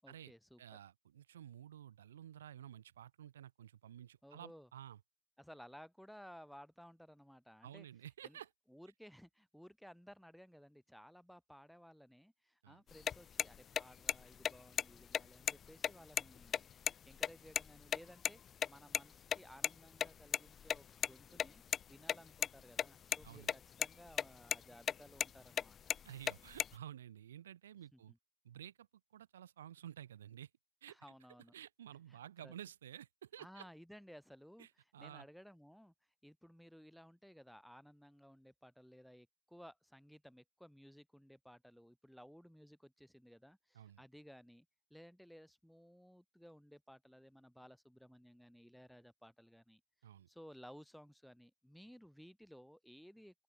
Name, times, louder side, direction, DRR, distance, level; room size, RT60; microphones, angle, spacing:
voice 1, 0.0-0.6 4.2-4.7 5.4-7.9 8.2-8.4 8.7-18.4 18.7-21.6 21.9-25.8 27.9-28.2 30.9-31.5 32.1-32.5 33.4-34.7 35.0-35.9 36.2-49.8 50.3-53.4, equal, ahead, 6.7 m, -58 dB
voice 2, 0.6-5.0 7.6-8.5 12.6-12.8 23.2-23.5 26.0-28.1 28.4-30.5 30.8-31.0 31.5-33.7 34.6-35.3 43.7-44.0 50.0-50.3, right 10 dB, 80° right, 7.2 m, -52 dB
sound 1, 12.9-18.0 18.2-18.3 18.6-18.7 18.9-19.0 19.3-19.4 19.6-19.7 20.0-21.1 21.4-21.8 22.1-22.8 23.1-23.5 23.8-24.2 24.5-24.6 24.9-25.3 25.6-26.7, left 8 dB, 45° left, 0.7 m, -34 dB
open air
figure-of-eight pair, 55°, 0 cm